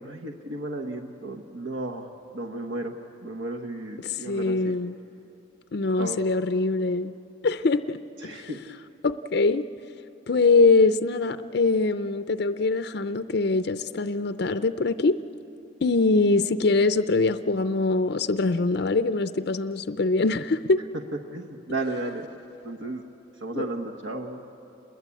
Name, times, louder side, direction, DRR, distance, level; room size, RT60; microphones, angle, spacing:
voice 1, 0.0-2.1 2.3-2.9 3.2-4.7 6.0-6.2 8.2-8.6 21.3-22.3 22.6-23.0 23.4-24.4, right 2 dB, 70° right, 2 dB, 1.2 m, -33 dB
voice 2, 4.0-5.0 5.7-7.1 7.4-8.5 9.0-9.7 10.3-15.2 15.8-20.8 23.5-23.7, left 3 dB, 50° left, 10 dB, 0.5 m, -23 dB
28.5 x 21.5 x 8.4 m, 2.9 s
head